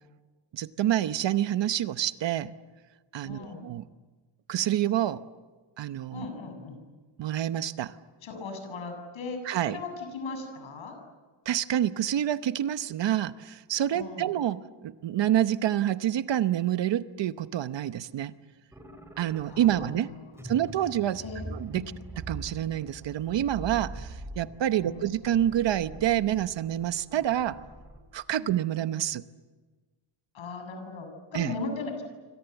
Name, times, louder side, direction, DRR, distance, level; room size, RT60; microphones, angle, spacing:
voice 1, 0.5-2.5 3.1-3.8 4.5-5.2 5.8-6.3 7.2-8.0 9.5-9.8 11.5-18.3 19.2-20.1 20.4-21.2 21.5-21.8 22.2-27.6 28.1-29.2 31.3-31.5, right 11 dB, 65° right, 13 dB, 1.0 m, -27 dB
voice 2, 3.2-3.6 6.1-6.8 8.2-11.0 13.9-14.3 19.5-20.7 21.2-21.4 21.7-22.0 24.8-25.2 28.4-28.5 30.3-32.0, left 3 dB, 75° left, 6 dB, 7.2 m, -38 dB
sound 1, 18.7-19.9 20.3-28.0, right 1 dB, 5° right, 3.0 m, -43 dB
28.0 x 25.0 x 8.0 m, 1.3 s
wide cardioid pair, 175°, 48 cm